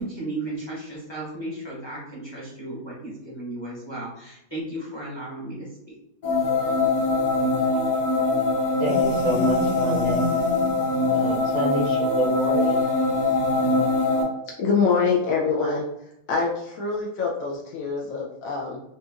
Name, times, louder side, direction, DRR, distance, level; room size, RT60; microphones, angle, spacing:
voice 1, 0.0-5.9, right 2 dB, 20° left, -7 dB, 0.9 m, -35 dB
sound 1, 6.2-14.2, left 2 dB, 50° left, 1.5 m, -22 dB
voice 2, 8.8-10.3 11.1-12.8, right 2 dB, 75° right, -3 dB, 1.4 m, -28 dB
voice 3, 14.6-15.8 16.3-18.8, left 5 dB, 70° left, -1 dB, 0.8 m, -24 dB
4.3 x 2.4 x 2.4 m, 0.84 s
omnidirectional pair, 1.9 m